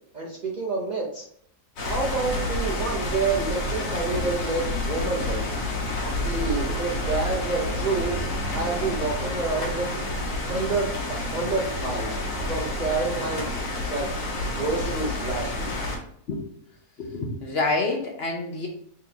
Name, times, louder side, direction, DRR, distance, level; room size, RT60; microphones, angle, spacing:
voice 1, 0.1-1.3 1.9-5.6 6.2-8.2 8.5-9.9 10.4-12.2 12.5-13.6 13.8-14.1 14.5-15.7, right 3 dB, 70° right, -3 dB, 0.4 m, -28 dB
sound 1, 1.8-16.0, left 1 dB, 75° left, 1.5 m, -29 dB
voice 2, 17.0-18.7, left 3 dB, 55° left, 0 dB, 0.7 m, -27 dB
4.2 x 3.7 x 2.7 m, 0.66 s
omnidirectional pair, 1.7 m